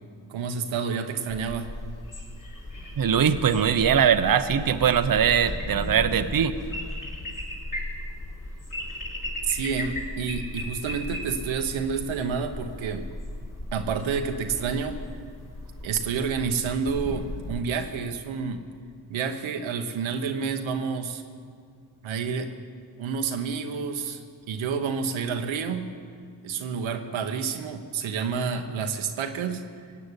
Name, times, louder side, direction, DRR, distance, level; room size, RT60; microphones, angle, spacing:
voice 1, 0.3-1.7 9.5-13.1 13.7-15.0 15.8-18.6 19.1-21.2 22.0-22.5 23.0-24.2 24.5-25.9 26.4-29.6, right 6 dB, 85° right, 5 dB, 1.1 m, -29 dB
sound 1, 1.3-17.6, left 1 dB, 45° left, 3.8 m, -36 dB
voice 2, 3.0-6.5, right 8 dB, 45° right, 9 dB, 0.8 m, -21 dB
17.0 x 8.7 x 8.2 m, 2.2 s
supercardioid pair, 45°, 46 cm